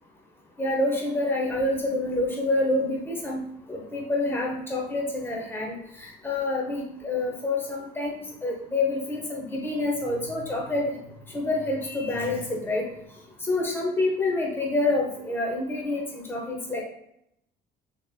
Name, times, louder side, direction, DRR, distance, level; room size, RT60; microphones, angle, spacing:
voice 1, 0.6-3.4 3.7-10.9 11.3-12.9 13.5-16.8, left 2 dB, 15° left, -1 dB, 0.8 m, -27 dB
3.5 x 3.1 x 2.3 m, 0.74 s
cardioid pair, 110°, 17 cm